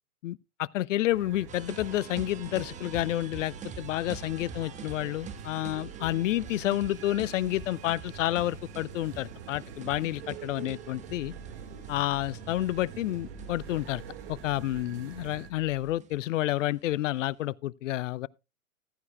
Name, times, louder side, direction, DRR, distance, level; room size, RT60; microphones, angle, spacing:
voice 1, 0.2-11.3 11.9-14.0 14.3-18.3, left 15 dB, 60° left, 0.5 m, -30 dB
sound 1, 1.1-15.5, right 8 dB, 45° right, 1.8 m, -45 dB
sound 2, 1.5-17.3, right 5 dB, 15° right, 1.3 m, -47 dB
sound 3, 11.1-15.9, right 2 dB, 25° left, 3.4 m, -50 dB
15.0 x 12.0 x 2.3 m
hypercardioid pair, 115°, 43 cm